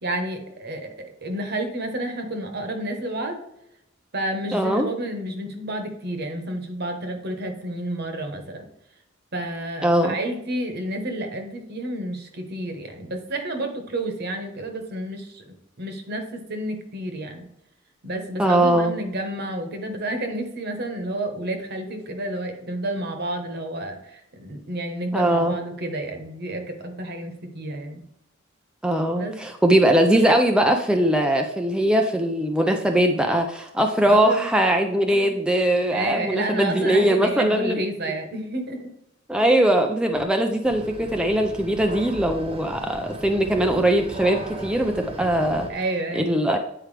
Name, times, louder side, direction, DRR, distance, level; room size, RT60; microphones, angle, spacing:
voice 1, 0.0-3.4 4.1-8.6 9.3-15.4 15.8-17.4 18.0-28.0 29.1-29.4 34.1-34.5 35.9-38.9 45.7-46.4, right 1 dB, 55° right, 5 dB, 1.2 m, -30 dB
voice 2, 4.5-4.9 9.8-10.2 18.4-18.9 25.1-25.6 28.8-37.8 39.3-45.7 46.1-46.6, right 1 dB, 5° right, 3 dB, 0.4 m, -21 dB
sound 1, 40.6-45.7, right 1 dB, 30° right, 1.1 m, -37 dB
9.1 x 4.6 x 3.3 m, 0.81 s
head